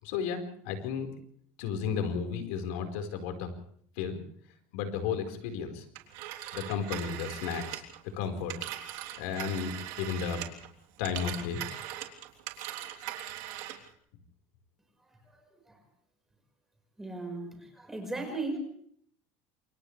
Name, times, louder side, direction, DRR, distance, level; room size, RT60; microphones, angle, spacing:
voice 1, 0.0-1.1 1.6-3.5 4.0-4.2 4.7-5.8 6.5-7.8 8.1-10.5 11.0-11.6, left 6 dB, 75° left, 5 dB, 4.8 m, -33 dB
Telephone, 5.9-10.7 11.0-13.9, right 13 dB, 65° right, 3.4 m, -40 dB
voice 2, 17.0-18.6, right 3 dB, 5° right, 3 dB, 5.4 m, -36 dB
29.5 x 28.0 x 3.4 m, 0.62 s
cardioid pair, 165°, 6 cm